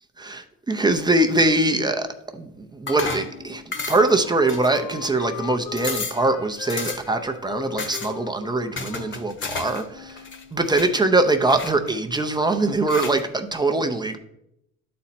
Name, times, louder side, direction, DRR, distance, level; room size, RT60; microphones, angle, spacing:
voice 1, 0.2-10.2 10.5-14.2, right 2 dB, 10° right, 5 dB, 0.6 m, -22 dB
sound 1, 2.9-3.3 3.7-4.2 4.5-5.1 5.4-5.5 5.8-6.2 6.7-7.2 7.8-8.1 8.8-9.8 10.1-10.9 11.5-12.2 12.9-13.2, left 4 dB, 35° left, 1.0 m, -32 dB
Wind instrument woodwind instrument, 3.3-10.8, left 9 dB, 80° left, 0.8 m, -39 dB
11.5 x 4.3 x 4.2 m, 0.81 s
cardioid pair, 125°, 35 cm